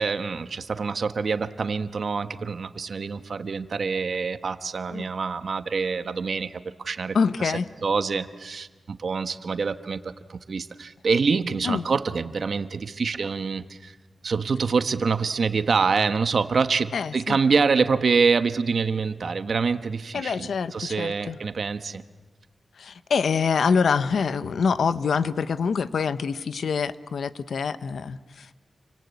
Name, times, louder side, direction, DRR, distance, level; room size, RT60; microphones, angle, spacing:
voice 1, 0.0-13.9 14.2-22.0, right 5 dB, 60° right, 10 dB, 1.2 m, -26 dB
voice 2, 7.1-7.7 11.6-11.8 16.9-17.4 20.1-21.4 22.8-28.5, left 5 dB, 85° left, 14 dB, 0.8 m, -25 dB
29.0 x 25.0 x 8.4 m, 1.3 s
wide cardioid pair, 120°, 0 cm